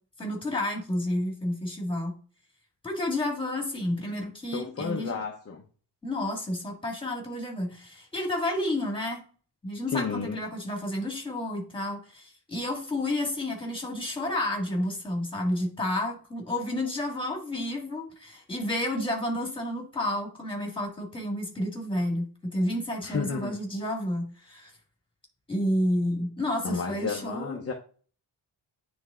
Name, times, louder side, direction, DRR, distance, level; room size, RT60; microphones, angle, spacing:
voice 1, 0.2-2.2 2.8-5.2 6.0-9.2 9.6-24.7 25.5-27.6, left 1 dB, 10° left, 1.8 m, -30 dB
voice 2, 4.5-5.6 9.9-10.4 23.0-23.6 26.6-27.7, left 5 dB, 35° left, 0.7 m, -32 dB
9.4 x 3.5 x 3.6 m
wide cardioid pair, 175°, 43 cm